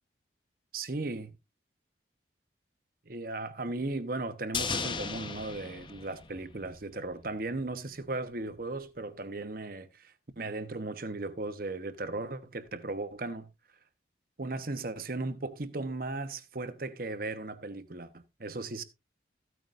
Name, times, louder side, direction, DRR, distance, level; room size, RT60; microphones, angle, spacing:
voice 1, 0.7-1.3 3.1-13.5 14.4-18.8, right 2 dB, 50° right, 1.0 m, -36 dB
sound 1, 4.5-6.9 7.2-7.3, left 5 dB, 25° left, 0.7 m, -36 dB
14.5 x 9.2 x 2.5 m
head